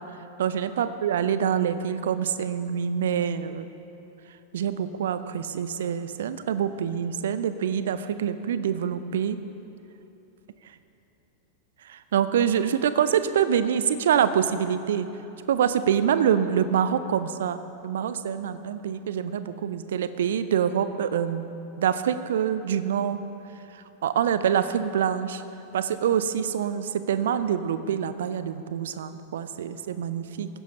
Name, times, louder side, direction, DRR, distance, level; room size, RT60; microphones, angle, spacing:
voice 1, 0.4-3.7 4.5-9.4 11.9-15.1 15.5-21.4 21.8-23.2 24.0-25.4 25.7-30.5, right 8 dB, 60° right, 12 dB, 0.6 m, -25 dB
21.0 x 15.5 x 2.8 m, 3.0 s
figure-of-eight pair, 90°, 0 cm